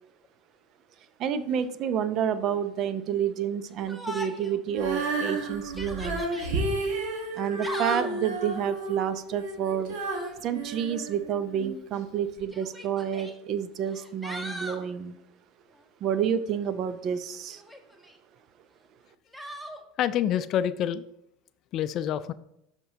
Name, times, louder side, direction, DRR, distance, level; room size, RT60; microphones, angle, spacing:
voice 1, 1.2-6.3 7.4-10.0 10.4-15.2 16.0-17.6, right 8 dB, 45° right, 13 dB, 0.6 m, -29 dB
Yell, 3.9-4.6 5.0-5.1 5.6-6.5 7.4-8.2 10.0-10.4 11.5-11.6 12.5-13.3 13.9-14.8 17.5-18.2 19.3-19.8, left 1 dB, ahead, 1.1 m, -39 dB
Female singing, 4.7-11.8 12.4-12.5, right 2 dB, 65° right, 1.6 m, -32 dB
voice 2, 20.0-21.0 21.7-22.3, left 10 dB, 50° left, 14 dB, 0.4 m, -27 dB
12.0 x 4.4 x 2.9 m, 0.80 s
hypercardioid pair, 80°, 0 cm